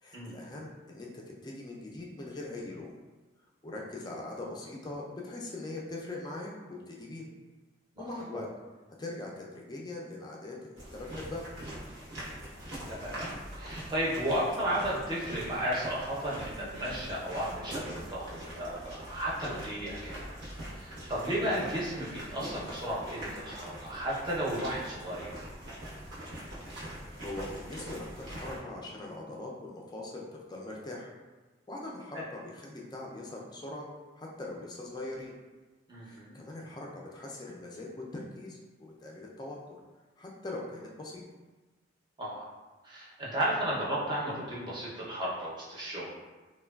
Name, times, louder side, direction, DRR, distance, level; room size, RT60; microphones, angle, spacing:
voice 1, 0.0-2.9 3.6-7.3 8.0-8.5 9.0-11.4 21.2-21.4 26.8-31.1 31.7-33.9 34.2-35.3 36.0-39.6 40.2-41.2, left 2 dB, 20° left, -2 dB, 0.3 m, -41 dB
sound 1, 10.8-28.6, right 1 dB, 75° right, 0.8 m, -43 dB
voice 2, 12.9-20.3 20.7-25.5 32.1-32.2 35.9-36.4 42.2-42.5 42.8-46.1, right 1 dB, 25° right, -7 dB, 0.6 m, -34 dB
3.2 x 2.2 x 2.2 m, 1.2 s
head